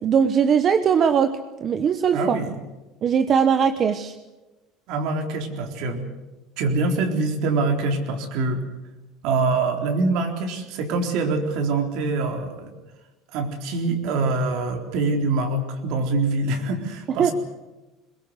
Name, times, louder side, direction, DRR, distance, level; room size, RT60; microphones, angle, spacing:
voice 1, 0.0-2.4 3.0-4.1 17.2-17.3, right 7 dB, 35° right, 10 dB, 1.0 m, -20 dB
voice 2, 2.1-2.5 4.9-6.1 6.6-8.6 9.2-12.7 13.3-17.3, right 3 dB, 65° right, 4 dB, 4.0 m, -24 dB
22.5 x 21.0 x 8.1 m, 1.1 s
cardioid pair, 130°, 0 cm